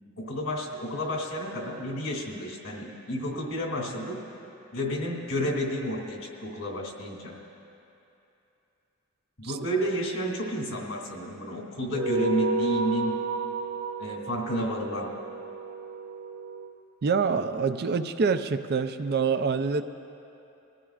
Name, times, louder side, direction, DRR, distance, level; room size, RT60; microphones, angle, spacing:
voice 1, 0.2-4.2 4.7-7.4 9.4-13.2 14.0-15.1, equal, 85° left, -2 dB, 2.6 m, -31 dB
sound 1, 11.9-16.7, right 3 dB, 70° right, 1.1 m, -31 dB
voice 2, 17.0-19.8, right 5 dB, 50° right, 9 dB, 0.4 m, -26 dB
22.5 x 15.0 x 2.4 m, 2.8 s
head